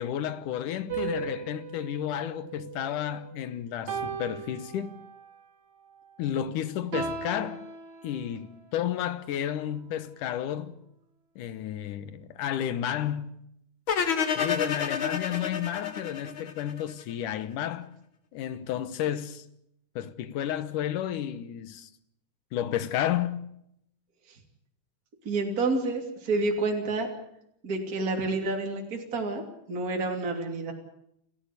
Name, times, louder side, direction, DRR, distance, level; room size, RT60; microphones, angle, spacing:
voice 1, 0.0-5.0 6.2-7.6 8.0-10.8 11.4-13.4 14.4-17.9 18.3-19.5 20.0-21.9 22.5-23.4, left 10 dB, 85° left, 2.7 m, -32 dB
sound 1, 0.9-3.3 3.9-5.4 6.9-8.6, right 6 dB, 65° right, 3.9 m, -37 dB
sound 2, 13.9-17.0, left 7 dB, 45° left, 2.2 m, -29 dB
voice 2, 25.2-27.1 27.6-29.4 29.7-30.7, right 3 dB, 30° right, 3.1 m, -29 dB
29.0 x 14.5 x 8.3 m
omnidirectional pair, 3.6 m